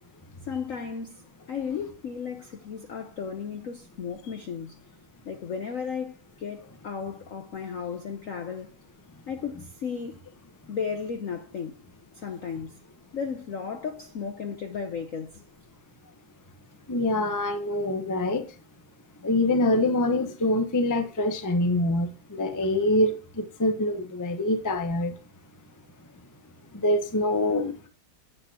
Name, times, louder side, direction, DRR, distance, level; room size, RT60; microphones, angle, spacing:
voice 1, 0.5-4.8 5.2-8.7 9.3-10.2 10.7-11.8 12.1-12.8 13.1-15.4, left 6 dB, 65° left, 0.8 m, -34 dB
voice 2, 16.9-18.4 19.2-23.1 23.6-25.1 26.8-27.7, left 1 dB, 20° left, 0.4 m, -24 dB
8.5 x 8.4 x 2.9 m
omnidirectional pair, 2.3 m